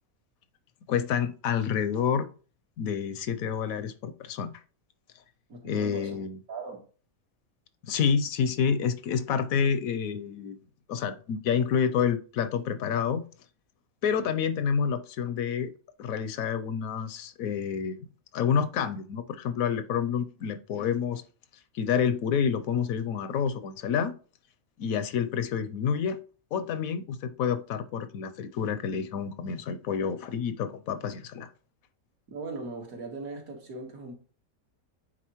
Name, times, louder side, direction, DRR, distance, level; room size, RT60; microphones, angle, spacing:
voice 1, 0.9-2.3 2.8-4.5 5.6-6.4 7.8-10.5 10.9-13.3 14.0-15.7 16.0-18.0 18.3-21.2 21.7-24.1 24.8-26.2 26.5-31.5, left 7 dB, 75° left, 1.0 m, -28 dB
voice 2, 5.5-6.2 6.5-6.8 32.3-34.1, right 3 dB, 70° right, 1.9 m, -39 dB
9.0 x 3.9 x 3.0 m
omnidirectional pair, 1.6 m